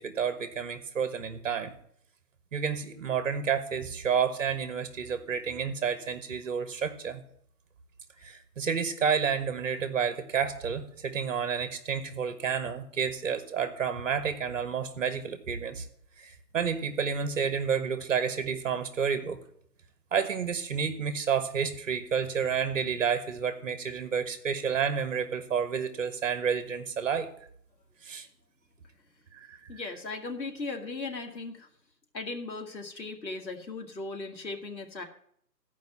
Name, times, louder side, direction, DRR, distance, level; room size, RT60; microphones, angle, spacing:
voice 1, 0.0-1.7 2.5-7.2 8.2-15.9 16.2-19.4 20.1-27.3 28.0-28.3 29.3-29.6, right 7 dB, 50° right, 11 dB, 1.3 m, -30 dB
voice 2, 29.7-31.7 32.1-35.0, left 3 dB, 90° left, 3 dB, 2.0 m, -37 dB
13.0 x 5.2 x 7.1 m, 0.67 s
figure-of-eight pair, 155°, 50 cm